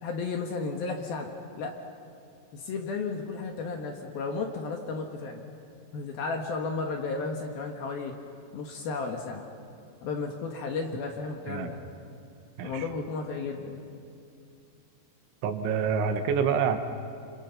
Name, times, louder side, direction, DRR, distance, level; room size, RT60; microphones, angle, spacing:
voice 1, 0.0-1.8 2.5-5.6 5.9-8.1 8.5-9.5 10.0-11.8 12.6-13.8, left 4 dB, 60° left, 2 dB, 2.9 m, -33 dB
voice 2, 12.6-12.9 15.4-16.8, right 6 dB, 75° right, 7 dB, 3.4 m, -27 dB
29.5 x 27.5 x 5.8 m, 2.5 s
omnidirectional pair, 5.7 m